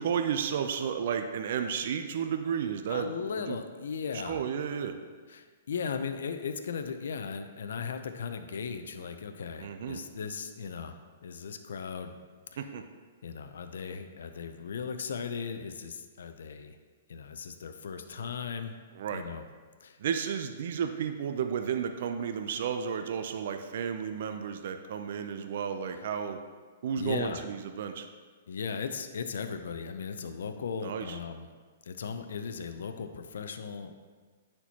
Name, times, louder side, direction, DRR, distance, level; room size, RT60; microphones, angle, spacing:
voice 1, 0.0-3.6 4.2-5.0 9.6-10.0 12.6-12.8 19.0-19.2 20.0-26.4 26.8-28.1 30.8-31.2, right 7 dB, 65° right, 7 dB, 0.4 m, -32 dB
voice 2, 2.9-4.4 5.3-12.2 13.2-16.8 17.1-18.7 19.1-19.4 19.8-20.0 27.0-27.4 28.5-31.5 31.8-34.0, left 6 dB, 75° left, 7 dB, 0.5 m, -37 dB
9.9 x 4.4 x 2.8 m, 1.5 s
hypercardioid pair, 140°, 0 cm